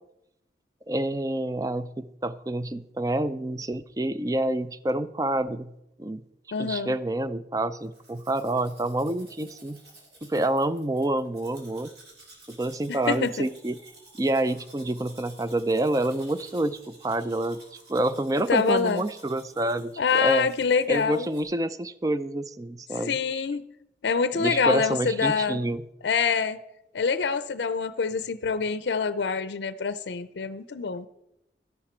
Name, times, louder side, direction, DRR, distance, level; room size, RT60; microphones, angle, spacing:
voice 1, 0.9-5.7 6.0-6.2 6.6-9.8 10.2-11.9 12.5-13.8 14.2-20.5 20.9-23.2 24.3-25.8, right 1 dB, 20° right, 13 dB, 0.4 m, -28 dB
voice 2, 6.5-6.9 12.9-13.5 18.5-19.0 20.0-21.3 23.1-23.6 24.0-25.6 26.0-26.6 26.9-31.1, left 5 dB, 80° left, 14 dB, 0.5 m, -25 dB
Domestic sounds home sounds, 7.8-21.4, right 2 dB, 65° right, 3.1 m, -53 dB
13.0 x 11.0 x 4.4 m, 0.85 s
head